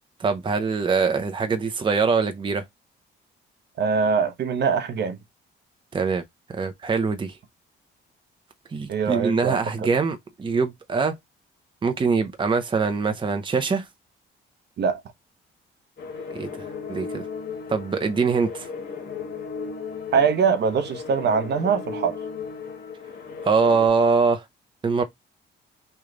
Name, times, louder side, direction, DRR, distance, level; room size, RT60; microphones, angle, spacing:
voice 1, 0.2-2.6 5.9-6.2 6.5-7.3 8.7-11.1 11.8-13.9 16.3-17.2 17.7-18.7 23.4-24.4 24.8-25.0, right 5 dB, 25° right, 0.6 m, -23 dB
voice 2, 3.8-5.2 8.9-9.9 14.8-15.0 20.1-22.2, right 6 dB, 60° right, 0.8 m, -23 dB
sound 1, 16.0-23.9, left 5 dB, 55° left, 1.3 m, -36 dB
3.2 x 2.3 x 3.8 m
cardioid pair, 90°, 20 cm